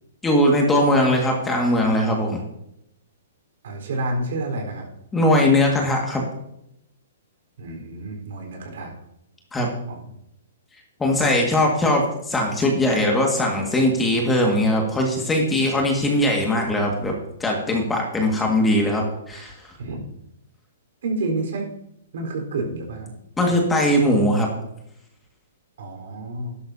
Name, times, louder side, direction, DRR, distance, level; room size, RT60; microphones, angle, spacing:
voice 1, 0.2-2.4 5.1-6.2 9.5-9.7 11.0-17.1 17.4-19.5 23.4-24.5, left 1 dB, 10° left, 0 dB, 1.9 m, -20 dB
voice 2, 3.6-4.9 7.6-8.9 9.9-10.1 19.8-20.1 21.0-21.7 22.1-23.1 23.5-23.6 24.4-24.5 25.8-26.6, right 2 dB, 65° right, 1 dB, 4.2 m, -29 dB
12.5 x 11.5 x 2.8 m, 0.80 s
hypercardioid pair, 150°, 0 cm